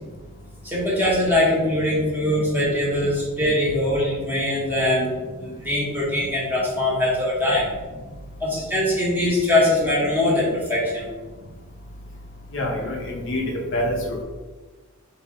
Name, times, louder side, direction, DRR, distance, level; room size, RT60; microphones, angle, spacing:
voice 1, 0.6-7.7 8.4-11.1, left 1 dB, 10° right, -7 dB, 1.2 m, -22 dB
voice 2, 12.5-14.2, left 1 dB, 60° left, 0 dB, 0.7 m, -26 dB
3.5 x 2.7 x 4.3 m, 1.3 s
head